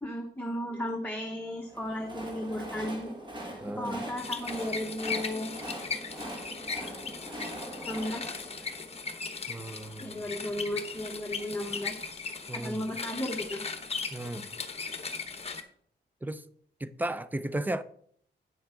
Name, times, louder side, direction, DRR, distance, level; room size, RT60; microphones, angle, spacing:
voice 1, 0.0-3.1 3.8-5.5 7.8-8.3 8.6-8.7 10.0-11.9 12.5-13.6, left 1 dB, 10° left, 1.1 m, -35 dB
Train, 1.6-9.7, right 1 dB, 25° right, 1.9 m, -42 dB
voice 2, 3.6-4.0 9.5-10.2 12.5-12.8 14.1-14.4 16.2-16.4 16.8-17.8, right 1 dB, 10° right, 0.5 m, -35 dB
sound 1, 4.2-15.6, left 5 dB, 35° left, 0.9 m, -38 dB
9.6 x 7.1 x 3.8 m
wide cardioid pair, 125°, 19 cm